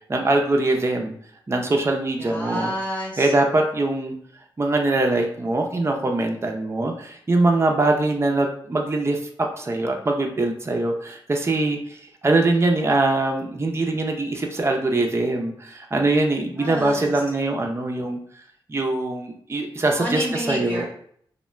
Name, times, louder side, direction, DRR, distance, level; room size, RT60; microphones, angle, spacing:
voice 1, 0.1-1.1 1.5-2.7 3.2-4.1 4.6-18.2 18.7-20.9, right 2 dB, 30° right, 2 dB, 0.5 m, -22 dB
voice 2, 2.2-3.3 16.6-17.1 19.9-20.9, equal, 15° left, -4 dB, 0.9 m, -29 dB
2.2 x 2.1 x 3.0 m, 0.63 s
supercardioid pair, 40°, 10 cm